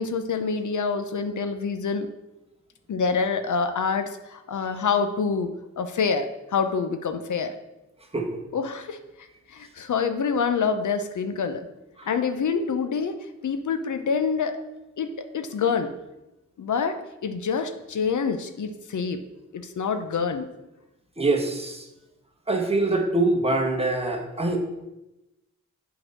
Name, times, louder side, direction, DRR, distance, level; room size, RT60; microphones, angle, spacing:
voice 1, 0.0-2.1 2.9-7.6 8.5-11.7 12.1-14.6 15.0-15.9 16.6-19.2 19.5-20.5, left 5 dB, 75° left, 9 dB, 0.7 m, -27 dB
voice 2, 21.2-21.8 22.5-24.6, right 2 dB, 20° right, 2 dB, 1.2 m, -24 dB
7.8 x 4.0 x 6.4 m, 0.97 s
wide cardioid pair, 105°, 30 cm